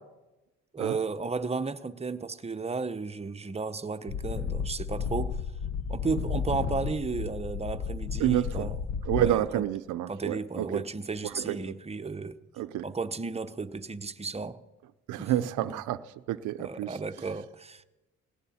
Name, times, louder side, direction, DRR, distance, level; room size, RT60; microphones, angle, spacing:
voice 1, 0.7-5.4 5.9-8.8 9.1-9.7 10.1-12.4 12.8-14.6 15.2-15.8 16.6-17.8, right 4 dB, 20° right, 0.9 m, -34 dB
sound 1, 4.1-9.3, left 6 dB, 65° left, 1.0 m, -33 dB
voice 2, 8.2-8.7 9.1-10.8 11.3-11.7 12.6-12.9 15.1-16.0 16.3-17.0, right 13 dB, 85° right, 0.6 m, -29 dB
18.5 x 17.5 x 4.3 m
cardioid pair, 90°, 30 cm